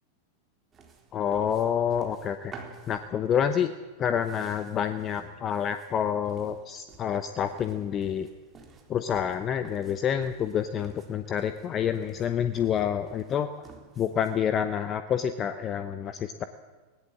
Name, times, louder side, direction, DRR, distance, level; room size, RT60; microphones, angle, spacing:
sound 1, 0.7-14.5, right 4 dB, 20° right, 3.8 m, -52 dB
voice 1, 1.1-2.5 2.9-3.7 4.0-8.3 8.9-13.5 14.0-16.4, left 8 dB, 30° left, 11 dB, 0.9 m, -28 dB
20.0 x 18.5 x 7.7 m, 1.3 s
figure-of-eight pair, 90°, 0 cm